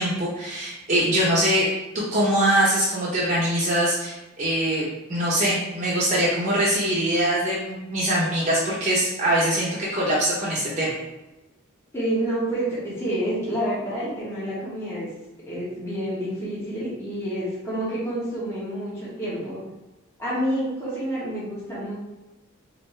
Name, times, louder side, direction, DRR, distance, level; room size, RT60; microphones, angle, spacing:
voice 1, 0.0-1.6 1.9-4.8 5.1-10.9, right 1 dB, 35° right, -7 dB, 0.8 m, -23 dB
voice 2, 11.9-15.1 15.5-19.6 20.2-21.9, right 1 dB, 10° left, -9 dB, 1.2 m, -28 dB
4.3 x 2.7 x 3.2 m, 1.0 s
head